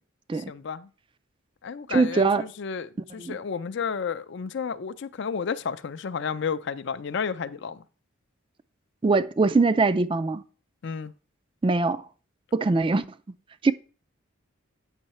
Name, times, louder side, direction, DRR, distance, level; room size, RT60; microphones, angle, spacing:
voice 1, 0.3-0.9 1.6-7.8 10.8-11.1, left 6 dB, 55° left, 0.4 m, -32 dB
voice 2, 1.9-2.4 3.2-3.4 9.0-10.4 11.6-12.0 12.5-13.0 13.6-13.7, right 3 dB, 25° right, 0.3 m, -22 dB
8.9 x 5.5 x 4.2 m
head